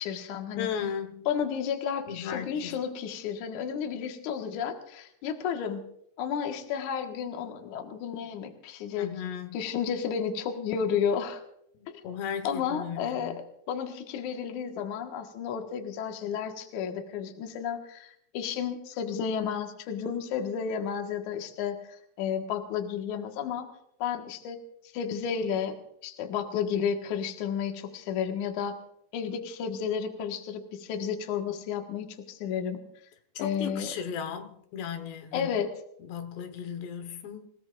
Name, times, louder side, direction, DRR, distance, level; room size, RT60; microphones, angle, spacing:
voice 1, 0.0-0.7 1.3-5.9 6.2-9.1 9.5-11.4 11.9-12.0 12.4-23.7 24.0-24.6 24.9-25.7 26.0-28.7 29.1-32.8 33.4-33.9 35.3-35.7, left 7 dB, 60° left, 2.6 m, -32 dB
voice 2, 0.6-1.3 2.1-2.8 8.9-9.6 11.7-13.4 33.4-35.5 36.1-37.5, left 7 dB, 85° left, 3.5 m, -36 dB
27.5 x 18.0 x 2.5 m
omnidirectional pair, 4.7 m